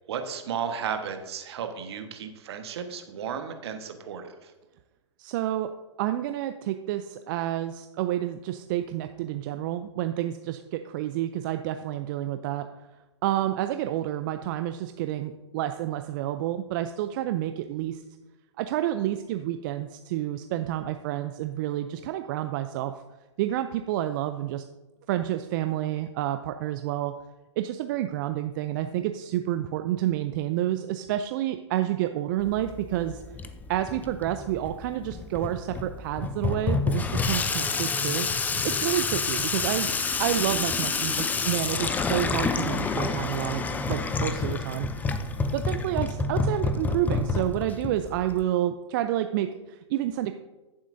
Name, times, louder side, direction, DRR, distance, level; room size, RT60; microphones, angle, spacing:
voice 1, 0.1-4.5, right 7 dB, 60° right, 6 dB, 1.3 m, -34 dB
voice 2, 5.2-5.7 6.0-12.7 13.2-18.0 18.6-22.9 23.4-24.6 25.1-27.1 27.6-33.2 33.7-39.9 40.2-44.9 45.5-50.3, right 13 dB, 45° right, 9 dB, 0.4 m, -29 dB
Water tap faucet / Sink (filling or washing), 32.4-48.4, left 4 dB, 10° left, 0.5 m, -29 dB
14.5 x 7.3 x 2.6 m, 1.1 s
hypercardioid pair, 115°, 15 cm